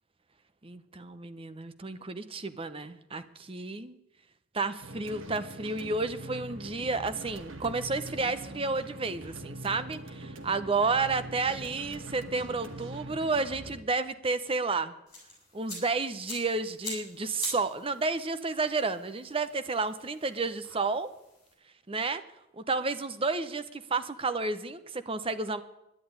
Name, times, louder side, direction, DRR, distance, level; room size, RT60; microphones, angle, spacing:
voice 1, 0.6-3.9 4.5-14.9 15.5-21.1 21.9-22.2 22.5-25.6, right 3 dB, 25° right, 12 dB, 0.8 m, -31 dB
sound 1, 4.8-13.8, right 1 dB, 75° right, 1.4 m, -43 dB
sound 2, 15.1-21.5, left 3 dB, 15° left, 6.5 m, -45 dB
11.0 x 10.0 x 9.5 m, 0.89 s
head